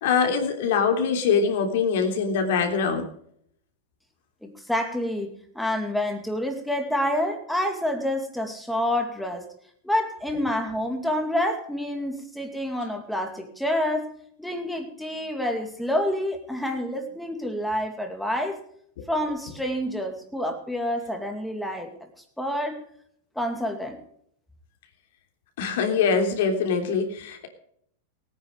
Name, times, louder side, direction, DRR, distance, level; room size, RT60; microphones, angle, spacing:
voice 1, 0.0-3.1 19.0-19.1 25.6-27.5, left 6 dB, 65° left, 4 dB, 3.2 m, -23 dB
voice 2, 4.4-9.5 9.8-14.1 14.4-18.6 19.1-21.9 22.4-22.8 23.4-24.0, left 1 dB, ahead, 4 dB, 2.4 m, -28 dB
17.5 x 9.7 x 5.3 m, 0.67 s
supercardioid pair, 150°, 0 cm